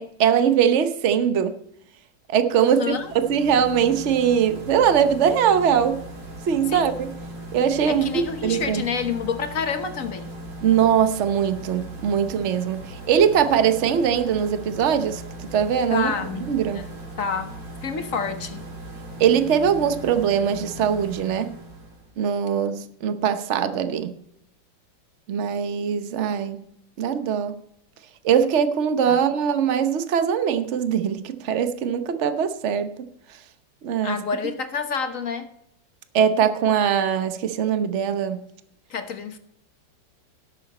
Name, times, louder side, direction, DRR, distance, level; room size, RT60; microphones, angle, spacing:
voice 1, 0.0-1.6 2.3-6.0 6.5-7.1 7.5-8.8 10.6-15.2 15.5-16.1 16.5-16.9 19.2-21.5 22.2-24.1 25.3-26.7 27.0-27.6 28.2-33.1 33.8-34.2 36.1-38.4, right 8 dB, 50° right, 1.0 m, -21 dB
voice 2, 2.6-3.1 6.7-6.9 7.9-10.3 15.9-16.4 16.7-16.9 17.2-18.6 29.1-29.2 34.0-35.5 38.9-39.4, left 6 dB, 50° left, 1.3 m, -28 dB
sound 1, 2.7-22.1, right 1 dB, 65° right, 3.4 m, -38 dB
17.5 x 7.0 x 4.2 m
omnidirectional pair, 2.1 m